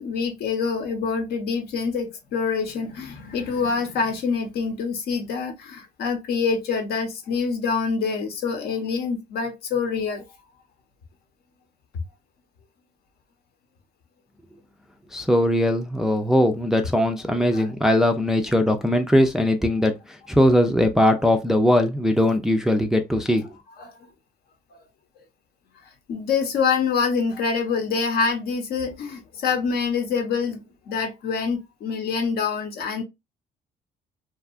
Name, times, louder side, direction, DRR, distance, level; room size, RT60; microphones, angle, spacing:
voice 1, 0.0-10.2 17.5-17.7 23.8-23.9 26.1-33.0, left 5 dB, 65° left, 0.8 m, -26 dB
voice 2, 15.1-19.9 20.3-23.5, left 1 dB, 5° right, 0.3 m, -20 dB
2.7 x 2.3 x 2.3 m
cardioid pair, 110°, 17 cm